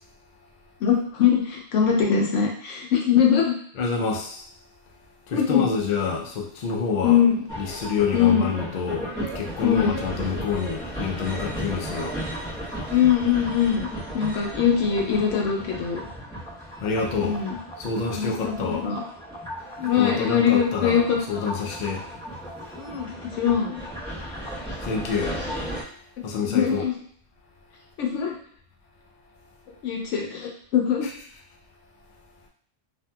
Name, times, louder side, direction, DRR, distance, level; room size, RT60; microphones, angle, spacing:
voice 1, 0.8-3.5 5.3-5.6 7.0-7.4 8.1-8.5 9.6-10.0 12.9-13.9 14.1-16.0 17.2-17.6 18.1-19.0 19.8-21.5 22.8-23.8 26.5-26.9 28.0-28.3 29.8-31.1, left 8 dB, 85° left, 1 dB, 1.0 m, -22 dB
voice 2, 3.8-4.4 5.3-7.2 7.6-12.2 16.8-17.4 17.8-18.9 19.9-22.1 24.8-25.4 26.2-26.8 31.0-31.1, left 5 dB, 55° left, 0 dB, 0.5 m, -27 dB
sound 1, 7.5-25.8, equal, 5° left, 0.8 m, -35 dB
2.7 x 2.6 x 2.2 m, 0.63 s
omnidirectional pair, 1.2 m